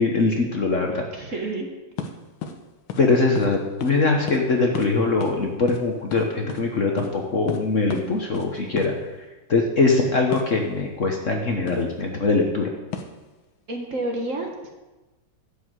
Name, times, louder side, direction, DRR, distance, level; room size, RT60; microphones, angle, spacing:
voice 1, 0.0-1.0 3.0-8.9 9.5-12.7, left 3 dB, 45° left, 1 dB, 1.2 m, -22 dB
voice 2, 0.9-1.7 13.7-14.7, right 2 dB, 45° right, 2 dB, 1.6 m, -30 dB
sound 1, 2.0-2.1 2.4-2.6 2.9-3.0 3.4-3.6 3.8-3.9 4.3-4.4 4.7-4.9 5.2-5.4 5.7-6.6 7.0-7.1 7.5-7.6 7.9-8.1 8.3-8.5 8.8-8.9 10.3-10.5 11.7-11.9 12.9-13.2, left 6 dB, 85° left, 1.7 m, -32 dB
11.5 x 5.6 x 7.9 m, 1.1 s
omnidirectional pair, 2.1 m